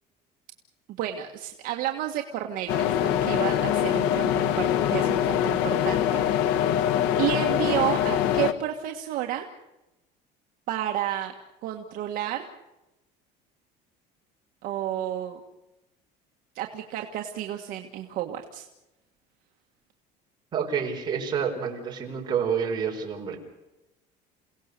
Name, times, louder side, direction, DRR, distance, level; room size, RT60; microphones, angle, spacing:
voice 1, 1.0-6.8 7.2-9.5 10.7-11.3 11.6-12.4 14.6-15.4 16.6-18.7, right 12 dB, 55° right, 2 dB, 1.7 m, -31 dB
sound 1, 2.7-8.5, left 10 dB, 85° left, 1.3 m, -24 dB
voice 2, 20.5-23.4, right 7 dB, 25° right, 0 dB, 4.7 m, -28 dB
29.0 x 17.5 x 6.8 m, 0.96 s
cardioid pair, 175°, 17 cm